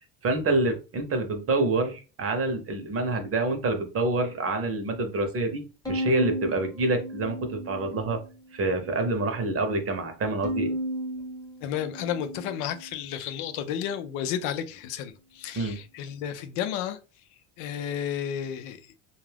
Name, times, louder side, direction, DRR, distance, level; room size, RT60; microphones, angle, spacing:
voice 1, 0.2-8.2 8.5-10.7 15.5-15.8, right 2 dB, 35° right, 0.8 m, -27 dB
Bowed string instrument, 5.9-8.2 8.7-9.5 10.4-13.0, equal, 10° left, 0.9 m, -34 dB
voice 2, 11.6-17.0 17.6-18.9, left 9 dB, 80° left, 0.6 m, -32 dB
2.4 x 2.3 x 3.3 m
supercardioid pair, 95°, 39 cm